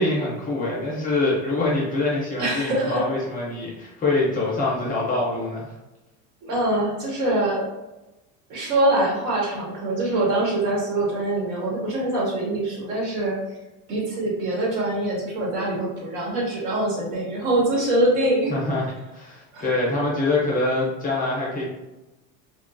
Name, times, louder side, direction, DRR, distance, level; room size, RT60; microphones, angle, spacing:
voice 1, 0.0-5.7 18.5-21.6, left 2 dB, 20° left, -5 dB, 0.4 m, -25 dB
voice 2, 2.4-3.0 6.4-7.7 8.5-13.4 13.9-18.5 19.5-19.6, right 1 dB, 85° right, -3 dB, 1.3 m, -24 dB
2.9 x 2.2 x 2.4 m, 1.0 s
cardioid pair, 150°, 44 cm